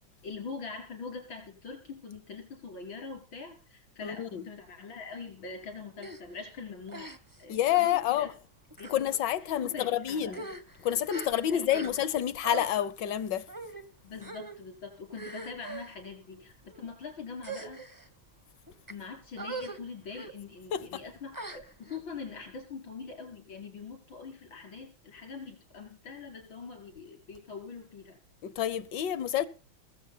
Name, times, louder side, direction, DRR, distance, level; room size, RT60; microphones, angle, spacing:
voice 1, 0.2-7.1 7.4-8.3 8.8-9.1 9.5-10.5 11.5-12.0 14.0-17.8 18.9-28.2, left 5 dB, 90° left, 5.5 m, -43 dB
voice 2, 4.0-4.4 7.5-8.3 8.9-10.5 10.8-13.5 20.7-21.0 28.4-29.5, left 11 dB, 70° left, 1.4 m, -28 dB
sound 1, 6.0-6.2 6.9-7.4 7.7-8.0 8.7-9.0 9.7-9.8 10.2-12.2 12.4-12.7 13.5-13.8 14.2-14.6 15.1-15.9 16.6-16.9 17.4-18.1 18.7-18.9 19.4-19.8 20.1-20.3 21.3-22.0, right 3 dB, 20° right, 0.6 m, -41 dB
20.5 x 7.5 x 5.6 m
omnidirectional pair, 2.1 m